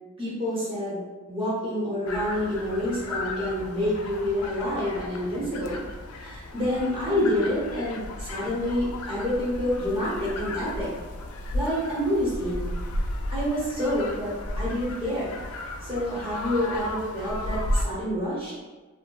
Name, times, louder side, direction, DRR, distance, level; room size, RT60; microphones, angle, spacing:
voice 1, 0.2-1.0 1.3-5.8 6.2-10.9 11.5-12.7 13.3-15.4 15.8-18.5, left 1 dB, 25° right, -9 dB, 0.9 m, -28 dB
sound 1, 2.1-17.9, left 1 dB, 90° left, 0.3 m, -34 dB
2.7 x 2.1 x 2.3 m, 1.3 s
head